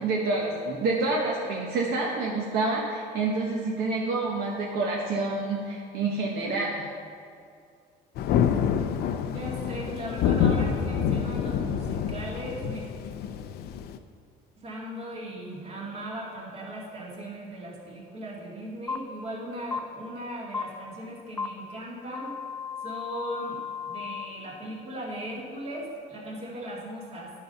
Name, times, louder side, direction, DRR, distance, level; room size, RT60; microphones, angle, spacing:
voice 1, 0.0-6.9, right 3 dB, 65° right, -3 dB, 1.2 m, -28 dB
Thunder, 8.1-14.0, left 8 dB, 65° left, 0.5 m, -27 dB
voice 2, 9.2-12.8 14.6-22.3 22.8-23.6 23.8-27.3, right 1 dB, 35° right, -3 dB, 2.1 m, -38 dB
sound 1, 18.9-19.0 19.7-19.8 20.5-20.6 21.4-21.5 22.1-24.2, left 6 dB, 10° left, 0.5 m, -34 dB
10.5 x 5.5 x 5.4 m, 2.3 s
cardioid pair, 135°, 17 cm